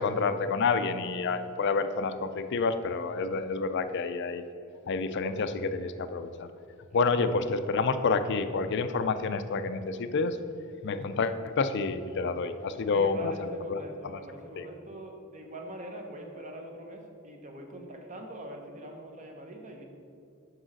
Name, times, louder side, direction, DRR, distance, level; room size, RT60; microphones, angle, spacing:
voice 1, 0.0-4.4 4.9-6.5 6.9-10.4 10.8-13.3 13.7-13.8, left 4 dB, 55° left, 10 dB, 0.4 m, -28 dB
voice 2, 12.8-19.8, right 1 dB, 35° right, 2 dB, 1.0 m, -43 dB
6.3 x 4.8 x 6.3 m, 2.4 s
head